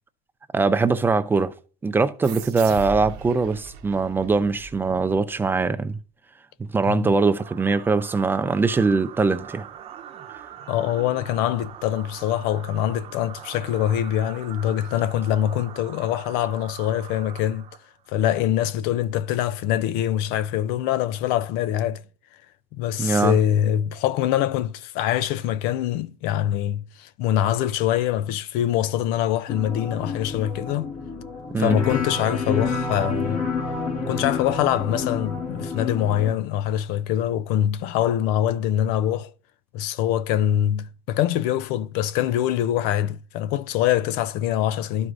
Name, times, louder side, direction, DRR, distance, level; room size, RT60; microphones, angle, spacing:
voice 1, 0.5-1.5 1.8-6.0 6.7-9.7 23.0-23.4 31.5-31.8, right 4 dB, 15° right, 0.4 m, -22 dB
sound 1, 2.2-5.4, right 6 dB, 75° right, 0.9 m, -38 dB
sound 2, 7.4-18.1, right 10 dB, 40° right, 0.8 m, -42 dB
voice 2, 10.7-17.6 18.1-22.0 22.7-30.9 31.6-33.4 34.1-39.3 39.7-45.1, left 11 dB, 85° left, 0.5 m, -24 dB
sound 3, 29.5-36.3, left 4 dB, 55° left, 1.7 m, -29 dB
12.5 x 4.7 x 2.5 m
cardioid pair, 155°, 16 cm